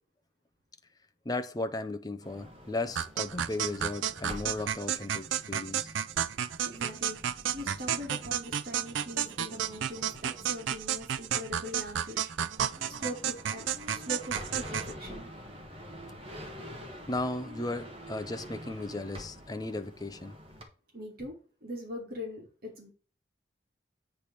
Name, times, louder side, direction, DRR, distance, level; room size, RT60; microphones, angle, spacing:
voice 1, 1.2-5.9 17.1-20.3, left 2 dB, 20° left, 0.6 m, -35 dB
sound 1, 2.2-20.6, equal, 30° right, 1.6 m, -47 dB
sound 2, 3.0-14.9, right 9 dB, 90° right, 0.5 m, -32 dB
voice 2, 6.6-7.2 7.5-12.3 13.0-13.7 13.9-15.3 20.9-21.3 21.6-22.9, equal, 50° right, 2.5 m, -41 dB
8.5 x 3.4 x 6.1 m
head